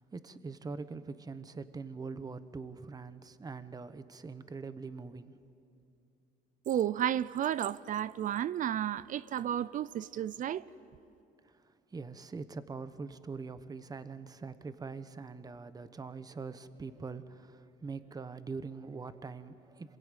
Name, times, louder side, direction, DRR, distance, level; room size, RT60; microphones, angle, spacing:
voice 1, 0.0-5.4 11.4-20.0, right 4 dB, 20° right, 1.0 m, -43 dB
voice 2, 6.7-10.7, right 10 dB, 50° right, 0.5 m, -32 dB
26.5 x 21.5 x 9.1 m
cardioid pair, 110°, 17 cm